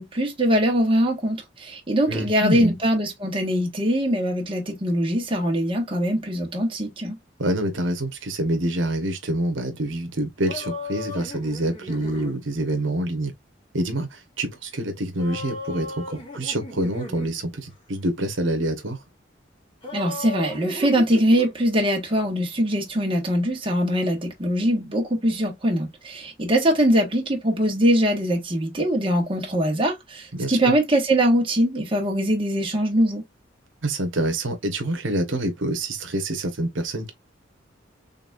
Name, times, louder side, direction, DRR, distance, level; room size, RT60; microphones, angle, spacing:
voice 1, 0.0-7.2 19.9-33.2, equal, 30° right, 1.4 m, -22 dB
voice 2, 2.1-2.7 7.4-13.3 13.7-19.0 30.3-30.7 33.8-37.1, right 1 dB, 80° right, 1.1 m, -26 dB
sound 1, 10.5-12.4 15.2-17.4 19.8-21.6, left 2 dB, 25° left, 2.0 m, -35 dB
4.0 x 3.5 x 2.4 m
head